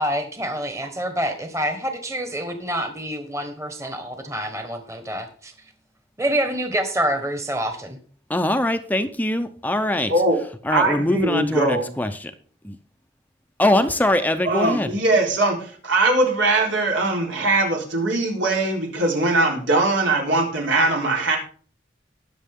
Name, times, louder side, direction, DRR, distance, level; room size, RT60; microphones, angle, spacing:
voice 1, 0.0-5.5 6.2-8.0, right 1 dB, 15° right, 1.3 m, -27 dB
voice 2, 8.3-10.1 10.6-12.3 12.6-12.8 13.6-14.9, left 1 dB, 10° left, 0.6 m, -22 dB
voice 3, 10.1-10.4 10.7-11.9 14.4-21.4, right 2 dB, 85° right, 3.9 m, -21 dB
19.5 x 6.7 x 3.7 m
head